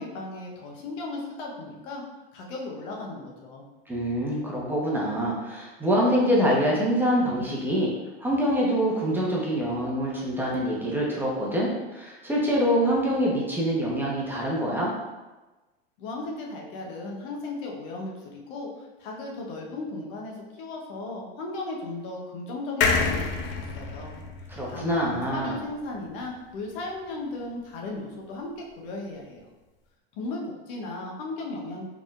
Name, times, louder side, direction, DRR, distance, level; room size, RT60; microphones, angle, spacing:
voice 1, 0.0-2.0 2.3-3.6 16.0-24.1 24.7-29.5 30.1-31.8, left 2 dB, 60° left, -1 dB, 1.0 m, -36 dB
voice 2, 3.9-7.9 8.2-14.9 24.5-25.5, equal, 5° right, -5 dB, 0.9 m, -25 dB
sound 1, 22.8-26.3 26.7-26.8 27.0-27.1, left 4 dB, 40° left, 0.6 m, -29 dB
4.1 x 3.5 x 2.4 m, 1.1 s
hypercardioid pair, 105°, 30 cm